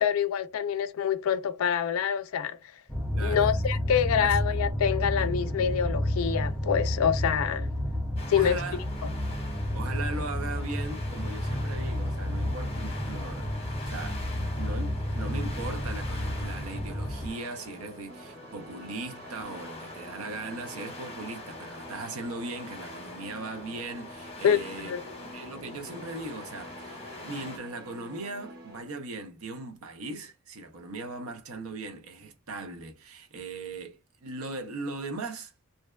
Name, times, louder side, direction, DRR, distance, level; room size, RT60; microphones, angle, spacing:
voice 1, 0.0-2.6 3.2-7.7 8.3-8.6 24.4-25.0, left 8 dB, 75° left, 0.3 m, -26 dB
sound 1, 2.9-17.3, left 1 dB, ahead, 0.5 m, -31 dB
voice 2, 3.1-4.6 8.3-8.8 9.7-14.3 14.6-24.9 25.2-35.5, right 3 dB, 85° right, 0.7 m, -39 dB
sound 2, 8.2-27.6, left 2 dB, 30° left, 0.7 m, -44 dB
sound 3, 18.1-28.8, right 1 dB, 50° right, 0.6 m, -49 dB
2.6 x 2.2 x 2.2 m
head